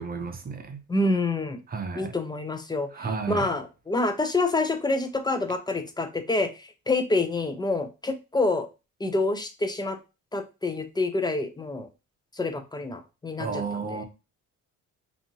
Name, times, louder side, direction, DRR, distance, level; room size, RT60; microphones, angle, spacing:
voice 1, 0.0-0.8 1.7-2.1 2.9-3.5 13.4-14.0, right 4 dB, 30° right, 0.6 m, -32 dB
voice 2, 0.9-1.6 2.0-2.9 3.3-8.7 9.0-10.0 10.3-11.9 12.3-13.6 13.9-14.0, left 2 dB, 15° left, 0.3 m, -27 dB
2.7 x 2.6 x 2.7 m
cardioid pair, 105°, 33 cm